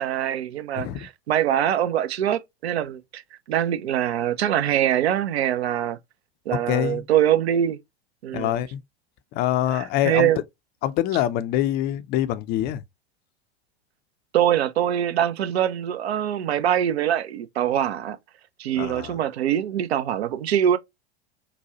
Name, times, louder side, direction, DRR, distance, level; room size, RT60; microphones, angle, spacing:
voice 1, 0.0-3.2 3.5-6.0 6.5-7.8 8.2-8.6 9.7-10.4 14.3-18.2 18.6-20.8, right 10 dB, 70° right, 0.7 m, -23 dB
voice 2, 6.7-7.0 8.3-8.8 9.3-10.3 10.8-12.8 18.8-19.1, left 12 dB, 30° left, 0.4 m, -25 dB
4.1 x 2.2 x 2.8 m
hypercardioid pair, 95°, 33 cm